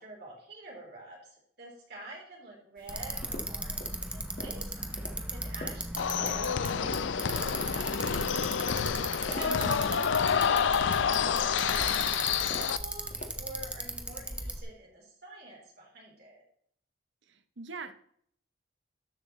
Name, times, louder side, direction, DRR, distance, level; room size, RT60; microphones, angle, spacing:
voice 1, 0.0-8.6 8.9-9.8 10.3-16.4, right 1 dB, 50° right, -3 dB, 3.6 m, -48 dB
sound 1, 2.8-13.6, left 1 dB, 45° left, 1.6 m, -47 dB
Bicycle, 2.9-14.6, right 1 dB, 5° right, 0.7 m, -37 dB
sound 2, 6.0-12.8, left 7 dB, 70° left, 0.5 m, -28 dB
voice 2, 9.5-9.9 17.2-17.9, right 3 dB, 70° right, 10 dB, 0.8 m, -42 dB
12.5 x 7.3 x 3.1 m, 0.65 s
head